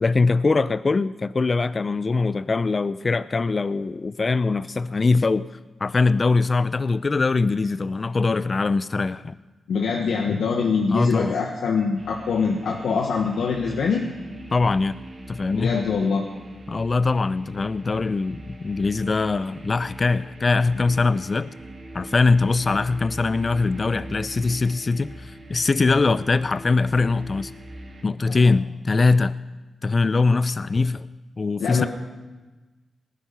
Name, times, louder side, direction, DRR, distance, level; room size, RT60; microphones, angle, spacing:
voice 1, 0.0-5.5 5.8-9.4 10.9-11.4 14.5-15.0 15.3-15.8 16.7-21.5 21.9-27.5 28.0-29.4 29.8-31.1 31.4-31.9, left 3 dB, 45° left, 15 dB, 0.5 m, -22 dB
voice 2, 9.7-14.1 15.5-16.2 20.7-20.9 28.3-28.5 31.6-31.9, left 5 dB, 85° left, 1 dB, 1.4 m, -24 dB
sound 1, 11.9-28.0, right 1 dB, 50° right, 4.0 m, -42 dB
19.5 x 10.5 x 5.8 m, 1.2 s
cardioid pair, 60°, 0 cm